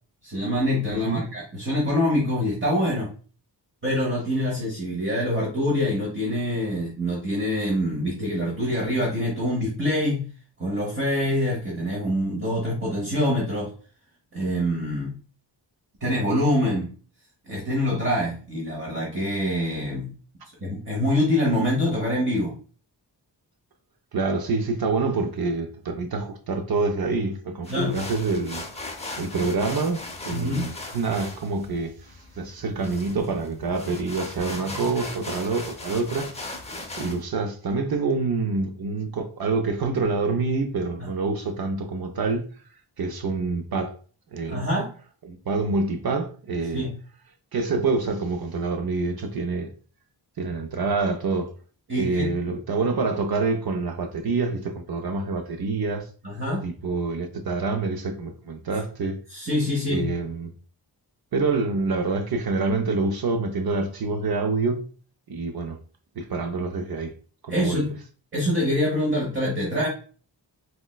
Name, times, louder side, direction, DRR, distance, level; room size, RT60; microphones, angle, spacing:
voice 1, 0.2-3.1 3.8-10.3 10.6-13.7 14.3-15.2 16.0-16.9 17.5-20.1 20.6-22.6 27.7-28.0 30.3-30.7 41.0-41.1 44.5-44.9 46.7-46.9 51.9-52.3 56.2-56.6 59.3-60.1 67.5-68.0 68.3-69.9, left 1 dB, 25° right, 0.8 m, -25 dB
voice 2, 0.9-1.2 24.1-28.6 29.2-36.3 37.0-42.4 43.0-43.9 44.3-44.6 45.2-46.9 47.5-49.7 50.4-51.5 51.9-56.1 56.6-59.2 59.9-60.5 61.3-64.9 65.3-65.8 66.2-67.1 67.4-67.8, right 3 dB, 55° right, 0.5 m, -26 dB
sound 1, 27.6-37.2, left 2 dB, 15° left, 0.4 m, -38 dB
4.2 x 2.1 x 2.2 m
wide cardioid pair, 110°, 44 cm